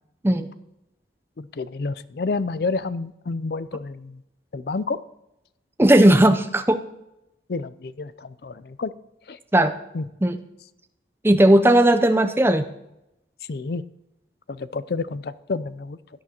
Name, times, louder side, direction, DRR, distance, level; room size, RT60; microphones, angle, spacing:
voice 1, 1.4-4.2 4.5-5.0 7.5-8.9 9.3-9.4 9.9-10.0 13.5-13.8 14.5-16.0, left 3 dB, 55° left, 15 dB, 0.4 m, -29 dB
voice 2, 5.8-6.8 9.5-9.7 10.2-10.4 11.2-12.6, right 1 dB, 15° right, 8 dB, 0.5 m, -16 dB
16.5 x 10.0 x 2.9 m, 0.87 s
head